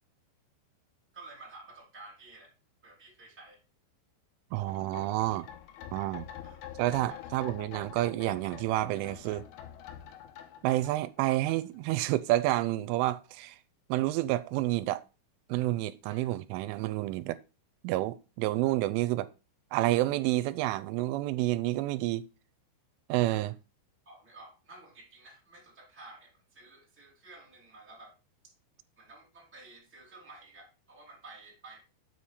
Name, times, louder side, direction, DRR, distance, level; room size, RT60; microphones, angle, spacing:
voice 1, 1.1-2.5 2.8-3.6 6.4-6.6 7.1-7.4 16.0-16.3 23.3-23.5 24.0-28.1 29.0-31.8, right 2 dB, 5° right, 1.8 m, -52 dB
voice 2, 4.5-5.5 5.9-6.3 6.8-9.5 10.6-13.6 13.9-15.0 15.5-17.4 17.8-19.3 19.7-22.3 23.1-23.5, right 16 dB, 90° right, 3.1 m, -29 dB
sound 1, 4.7-12.0 12.3-12.4, left 10 dB, 85° left, 3.4 m, -46 dB
7.5 x 5.6 x 4.9 m
omnidirectional pair, 5.5 m